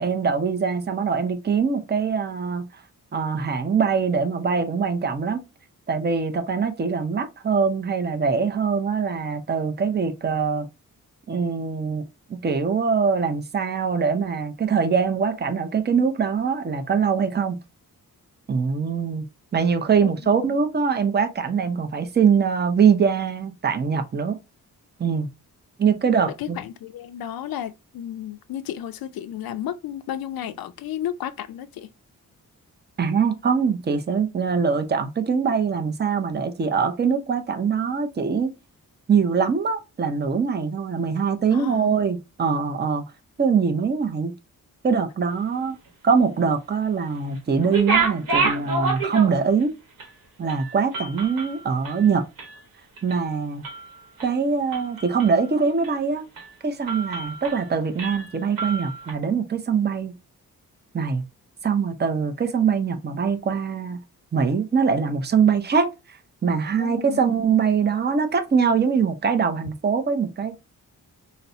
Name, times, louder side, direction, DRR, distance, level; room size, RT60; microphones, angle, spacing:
voice 1, 0.0-2.8 3.1-5.4 5.9-10.7 11.3-17.6 18.5-19.2 19.5-24.4 25.0-25.3 25.8-26.6 33.0-38.5 39.1-43.0 43.4-44.3 44.8-45.8 46.0-49.7 50.4-52.3 53.0-53.6 54.2-56.2 56.6-60.1 60.9-61.2 61.6-64.0 64.3-66.2 66.4-70.6, right 6 dB, 30° right, 0.6 m, -23 dB
voice 2, 20.0-20.5 26.4-31.9 41.5-42.0 66.8-67.2, left 11 dB, 80° left, 0.5 m, -33 dB
sound 1, 47.6-49.6 50.0-50.1 50.5-52.6 53.0-53.3 53.6-54.3 54.7-55.4 55.8-56.0 56.4-56.5 56.9-57.7 58.0-59.1, right 4 dB, 70° right, 1.2 m, -28 dB
4.0 x 2.1 x 2.6 m
cardioid pair, 85°, 35 cm